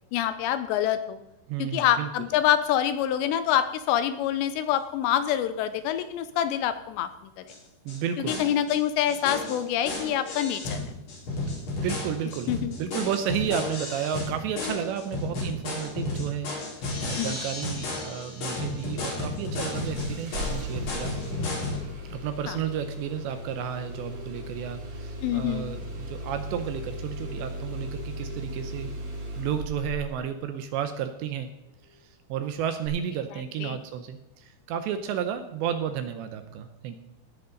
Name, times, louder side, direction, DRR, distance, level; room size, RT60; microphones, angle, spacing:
voice 1, 0.1-1.2 1.6-7.1 7.4-7.5 8.2-10.8 12.5-12.7 17.2-17.4 22.5-22.6 25.2-25.7 33.6-33.8, left 10 dB, 80° left, 11 dB, 2.5 m, -26 dB
voice 2, 1.5-2.1 7.9-8.4 11.8-12.5 12.8-21.1 22.1-28.9 29.4-31.5 32.3-37.0, right 9 dB, 80° right, 8 dB, 2.7 m, -32 dB
sound 1, 7.5-7.6 7.9-8.0 8.3-8.8 9.1-21.8, left 2 dB, 55° left, 6.0 m, -33 dB
Engine starting, 19.6-30.2 32.8-32.9, equal, 45° right, 3.2 m, -37 dB
18.5 x 8.3 x 3.9 m, 0.95 s
omnidirectional pair, 5.6 m